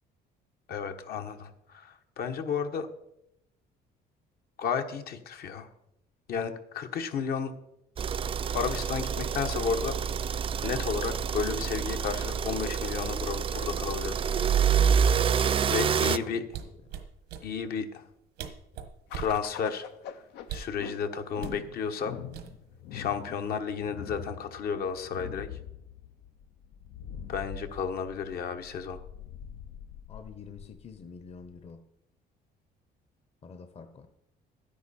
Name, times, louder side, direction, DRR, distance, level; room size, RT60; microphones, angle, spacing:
voice 1, 0.7-2.9 4.6-5.7 6.3-7.5 8.5-9.9 10.6-14.2 15.7-16.4 17.4-18.1 19.2-19.8 20.1-20.2 20.5-22.2 22.9-25.5 27.3-29.0, left 6 dB, 65° left, 7 dB, 1.2 m, -32 dB
sound 1, 8.0-16.2, right 7 dB, 30° right, 0.4 m, -27 dB
voice 2, 15.8-16.6 23.3-23.6 30.1-31.9 33.4-34.1, left 5 dB, 35° left, 9 dB, 0.9 m, -46 dB
sound 2, 16.5-17.5 18.1-18.2 18.4-19.4 20.4-20.8 21.4-21.6 22.3-22.8 23.1-23.4, right 9 dB, 90° right, 1.3 m, -39 dB
sound 3, 19.1-31.7, left 9 dB, 85° left, 0.8 m, -44 dB
12.0 x 10.0 x 4.2 m, 0.82 s
cardioid pair, 110°, 17 cm